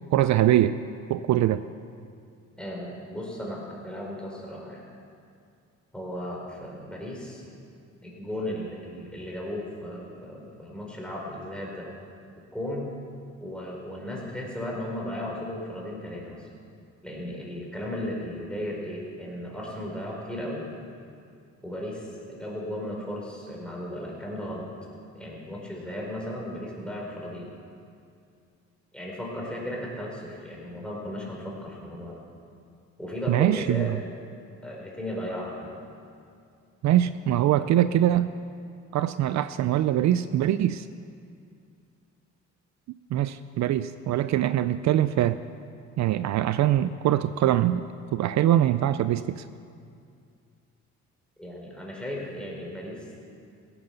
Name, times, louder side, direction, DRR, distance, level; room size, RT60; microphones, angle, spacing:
voice 1, 0.1-0.8 1.1-1.6 33.3-33.9 36.8-38.3 38.9-40.9 43.1-45.4 46.0-47.8 48.1-49.4, right 12 dB, 65° right, 13 dB, 0.5 m, -23 dB
voice 2, 2.6-4.8 5.9-7.5 8.0-11.9 12.5-12.9 13.4-16.5 17.0-20.6 21.6-24.7 25.1-27.5 28.9-32.2 33.0-33.9 34.6-35.8 51.4-53.1, left 1 dB, 5° left, -3 dB, 4.4 m, -35 dB
17.0 x 9.6 x 6.7 m, 2.4 s
cardioid pair, 90°, 30 cm